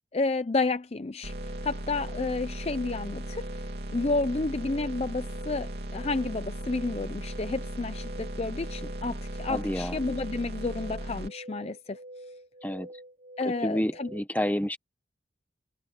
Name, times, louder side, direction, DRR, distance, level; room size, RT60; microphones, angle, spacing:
voice 1, 0.1-1.3 1.6-3.6 3.9-12.0 13.4-14.1, left 3 dB, 35° left, 0.5 m, -31 dB
sound 1, 1.2-11.3, right 1 dB, 60° right, 2.8 m, -37 dB
sound 2, 1.3-14.2, right 1 dB, 35° right, 0.9 m, -47 dB
voice 2, 9.5-10.0 12.6-12.9 13.4-14.8, equal, 10° left, 1.1 m, -29 dB
head